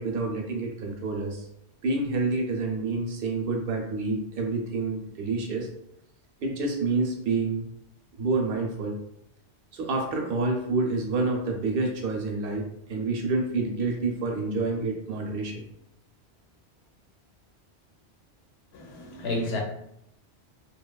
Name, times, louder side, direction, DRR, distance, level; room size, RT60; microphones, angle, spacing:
voice 1, 0.0-1.4 1.8-5.7 6.4-7.7 8.2-8.9 9.7-15.6, right 3 dB, 65° right, 1 dB, 0.7 m, -28 dB
voice 2, 18.7-19.6, left 2 dB, 70° left, 1 dB, 0.8 m, -31 dB
2.8 x 2.2 x 2.2 m, 0.77 s
omnidirectional pair, 1.1 m